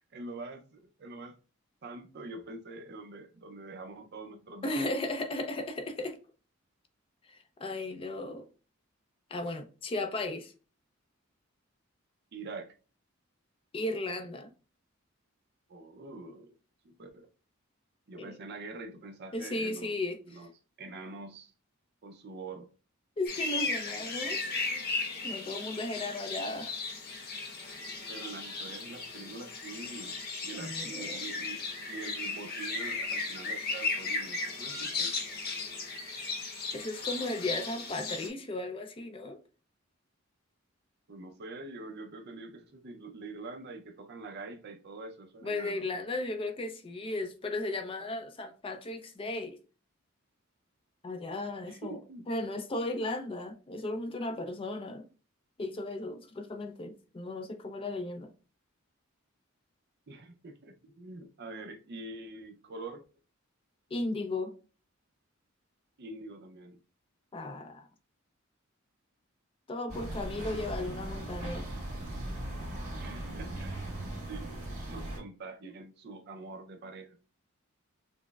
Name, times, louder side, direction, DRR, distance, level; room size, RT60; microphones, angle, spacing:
voice 1, 0.1-1.4 1.8-4.9 12.3-12.7 15.7-16.6 16.8-17.3 18.1-19.9 20.3-20.5 20.8-21.5 22.0-22.7 28.1-35.1 41.1-46.0 51.6-52.2 60.1-63.0 66.0-66.8 70.8-71.3 72.9-74.5 74.9-77.2, right 3 dB, 50° right, 0.5 m, -45 dB
voice 2, 4.6-6.2 7.3-8.5 9.3-10.5 13.7-14.5 18.2-18.4 19.3-20.4 23.2-24.4 25.2-26.7 30.5-31.2 36.7-39.4 45.4-49.6 51.0-52.0 52.3-55.1 55.6-58.3 63.9-64.5 67.3-67.9 69.7-71.7 75.6-75.7, left 2 dB, 25° left, 0.4 m, -35 dB
sound 1, 23.3-38.3, left 3 dB, 45° left, 0.8 m, -36 dB
sound 2, 69.9-75.2, right 1 dB, 35° right, 1.9 m, -38 dB
6.0 x 2.0 x 2.3 m
head